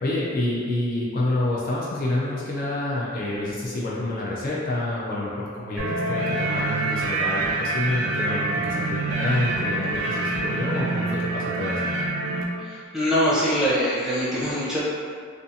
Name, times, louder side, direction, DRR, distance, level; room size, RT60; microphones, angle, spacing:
voice 1, 0.0-11.9, left 2 dB, 45° left, -6 dB, 0.4 m, -28 dB
sound 1, 5.8-12.4, right 2 dB, 65° right, 0.4 m, -26 dB
voice 2, 12.6-14.8, equal, 5° right, -10 dB, 0.6 m, -23 dB
2.5 x 2.4 x 2.6 m, 2.1 s
head